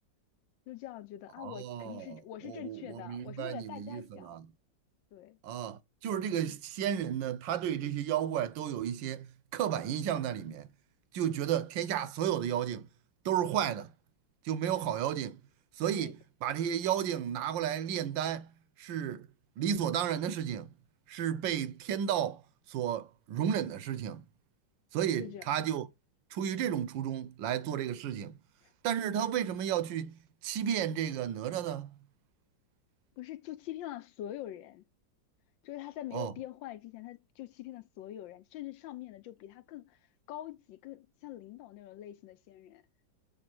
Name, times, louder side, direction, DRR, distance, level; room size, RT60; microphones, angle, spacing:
voice 1, 0.7-4.3 5.1-5.4 15.9-16.1 25.2-25.5 28.6-28.7 33.2-34.8 35.6-40.0 40.3-42.8, left 13 dB, 85° left, 1.4 m, -44 dB
voice 2, 1.4-4.5 5.4-10.7 11.1-12.9 13.2-13.9 14.4-15.4 15.8-18.5 18.8-19.3 19.6-20.7 21.1-22.4 22.7-24.2 24.9-25.9 26.3-28.3 28.8-31.9 36.1-36.3, right 9 dB, 85° right, 1.4 m, -33 dB
6.6 x 3.4 x 6.0 m
omnidirectional pair, 2.0 m